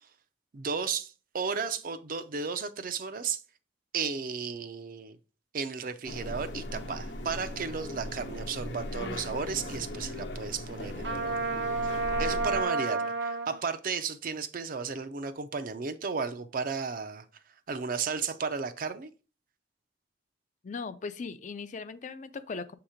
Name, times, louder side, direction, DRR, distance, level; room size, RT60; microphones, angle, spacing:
voice 1, 0.5-3.4 3.9-5.2 5.5-11.3 12.2-17.3 17.7-19.1, right 5 dB, 50° right, 0.5 m, -34 dB
sound 1, 6.0-12.6, left 1 dB, 75° left, 0.9 m, -38 dB
Trumpet, 11.0-13.5, right 3 dB, 80° right, 0.9 m, -30 dB
voice 2, 20.6-22.7, left 4 dB, 45° left, 0.4 m, -38 dB
7.1 x 2.9 x 4.9 m
head